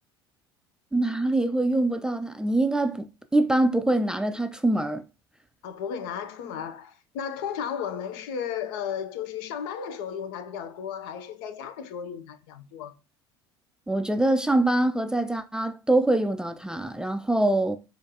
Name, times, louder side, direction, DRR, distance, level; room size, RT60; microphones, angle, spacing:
voice 1, 0.9-5.0 13.9-17.8, right 2 dB, 5° right, 0.3 m, -24 dB
voice 2, 5.6-12.9, left 8 dB, 65° left, 0.5 m, -34 dB
4.5 x 2.4 x 2.8 m
hypercardioid pair, 70°, 13 cm